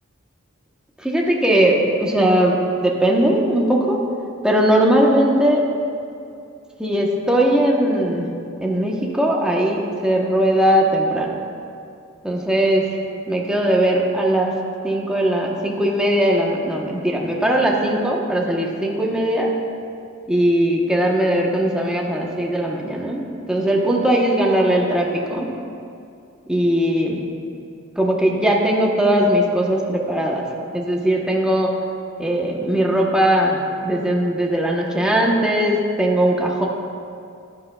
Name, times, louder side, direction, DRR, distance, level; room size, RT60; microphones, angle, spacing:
voice 1, 1.0-4.0 4.4-5.6 6.8-8.3 8.6-11.3 12.2-12.8 13.3-14.5 14.8-19.5 20.3-23.2 23.5-25.5 26.5-27.2 28.0-30.5 30.7-31.7 32.2-36.7, right 1 dB, 5° right, -2 dB, 0.9 m, -19 dB
13.0 x 10.5 x 2.3 m, 2.5 s
head